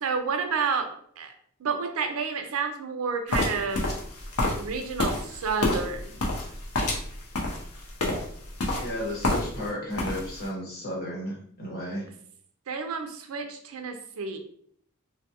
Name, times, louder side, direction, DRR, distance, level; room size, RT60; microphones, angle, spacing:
voice 1, 0.0-0.9 1.2-1.3 1.6-3.9 4.5-6.2 12.7-14.4, right 5 dB, 70° right, 6 dB, 0.4 m, -30 dB
sound 1, 3.3-9.7 9.9-10.5, left 2 dB, 85° left, 0.7 m, -29 dB
voice 2, 8.7-12.0, equal, 45° left, -5 dB, 1.1 m, -33 dB
2.3 x 2.2 x 2.8 m, 0.63 s
head